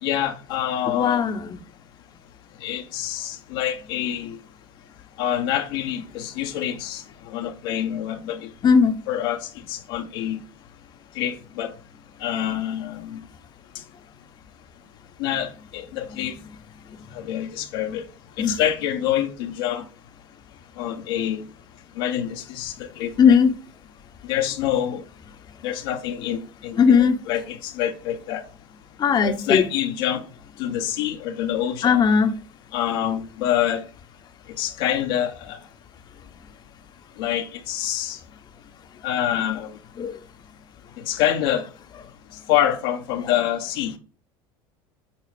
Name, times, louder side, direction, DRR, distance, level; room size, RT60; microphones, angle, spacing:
voice 1, 0.0-1.2 2.6-4.4 5.2-8.5 9.1-10.4 11.1-11.7 12.2-13.2 15.2-16.3 17.1-18.0 18.4-19.8 20.8-21.5 22.0-23.4 24.2-25.0 25.6-28.4 29.2-30.2 30.6-32.0 32.7-33.9 34.6-35.6 37.2-38.2 39.0-39.8 41.0-41.7 42.5-44.0, left 11 dB, 75° left, 1.1 m, -26 dB
voice 2, 0.9-1.6 8.6-8.9 18.4-18.5 23.2-23.5 26.8-27.2 29.0-29.6 31.8-32.3 40.0-40.1, left 6 dB, 35° left, 0.9 m, -17 dB
8.6 x 4.0 x 5.1 m
supercardioid pair, 95°, 13 cm